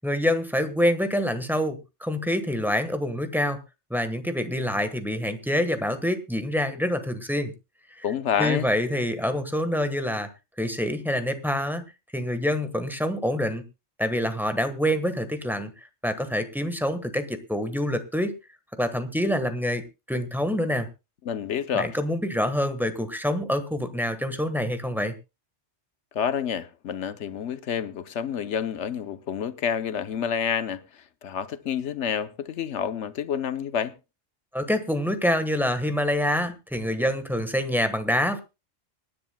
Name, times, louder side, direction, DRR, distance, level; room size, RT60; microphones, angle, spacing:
voice 1, 0.0-3.6 3.9-7.5 7.9-10.3 10.6-11.8 12.1-13.6 14.0-15.7 16.0-18.3 18.8-19.8 20.1-20.9 21.7-25.1 34.5-38.4, equal, ahead, 1.2 m, -26 dB
voice 2, 8.0-8.7 21.2-21.9 26.1-33.9, left 8 dB, 80° left, 1.1 m, -29 dB
25.0 x 10.0 x 2.2 m
omnidirectional pair, 1.2 m